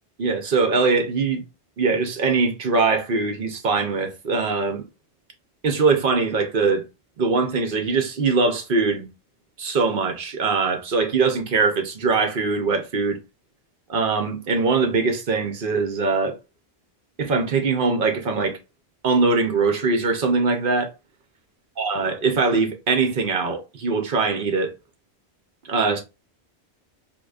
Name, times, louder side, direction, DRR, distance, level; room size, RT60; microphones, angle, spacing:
voice 1, 0.2-1.4 1.8-4.8 5.6-6.8 7.2-9.1 9.6-13.2 13.9-16.4 17.2-18.6 19.0-20.9 21.8-24.7 25.6-26.0, right 4 dB, 55° right, 0.9 m, -22 dB
3.9 x 2.9 x 2.3 m
omnidirectional pair, 1.1 m